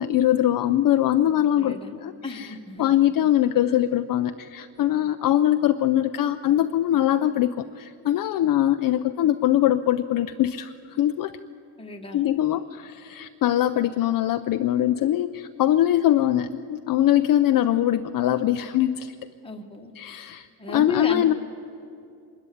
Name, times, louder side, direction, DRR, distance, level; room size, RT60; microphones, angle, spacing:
voice 1, 0.0-11.3 12.1-19.1 20.0-21.3, left 12 dB, 50° left, 8 dB, 0.5 m, -22 dB
voice 2, 1.6-2.0 2.2-2.9 11.8-12.3 19.4-19.9 20.6-21.3, left 3 dB, 10° left, 3 dB, 1.3 m, -33 dB
24.5 x 13.5 x 9.9 m, 2.5 s
cardioid pair, 165°, 44 cm